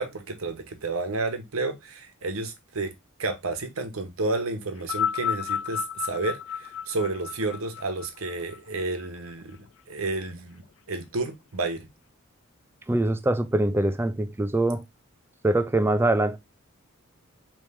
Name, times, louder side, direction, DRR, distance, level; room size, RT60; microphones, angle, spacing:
voice 1, 0.0-2.9 3.2-9.6 9.9-11.9, right 3 dB, 90° right, 1.0 m, -31 dB
sound 1, 4.8-9.3 10.2-10.3, left 8 dB, 65° left, 0.3 m, -32 dB
voice 2, 12.9-14.8 15.4-16.4, right 1 dB, 10° right, 0.3 m, -23 dB
4.3 x 3.0 x 3.4 m
head